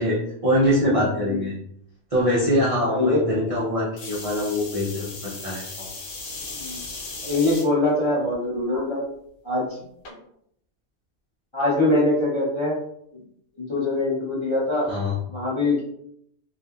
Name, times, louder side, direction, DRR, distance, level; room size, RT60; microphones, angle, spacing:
voice 1, 0.0-1.5 2.1-5.9 14.9-15.2, equal, 50° right, -7 dB, 0.4 m, -23 dB
voice 2, 2.8-3.5 6.5-6.8 7.2-9.0 9.4-9.6 11.5-12.7 13.1-13.2 13.6-14.9 15.3-15.8, left 2 dB, 30° left, -6 dB, 0.5 m, -23 dB
sound 1, 4.0-7.7 8.3-8.8 10.1-10.2, left 3 dB, 85° left, 1.1 m, -36 dB
2.8 x 2.3 x 2.3 m, 0.70 s
omnidirectional pair, 1.5 m